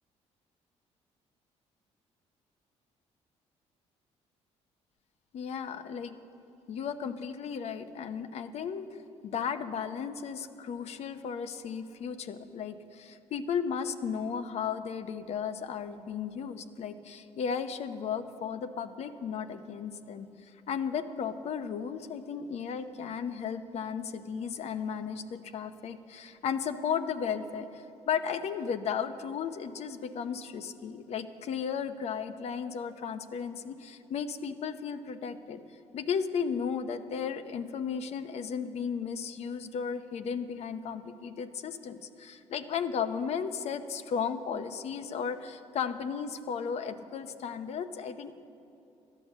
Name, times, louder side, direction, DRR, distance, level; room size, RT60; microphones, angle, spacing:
voice 1, 5.3-6.1 6.7-8.9 9.2-20.3 20.7-35.6 35.9-48.3, left 7 dB, 60° left, 10 dB, 0.7 m, -35 dB
13.0 x 9.9 x 7.2 m, 2.8 s
cardioid pair, 110°, 12 cm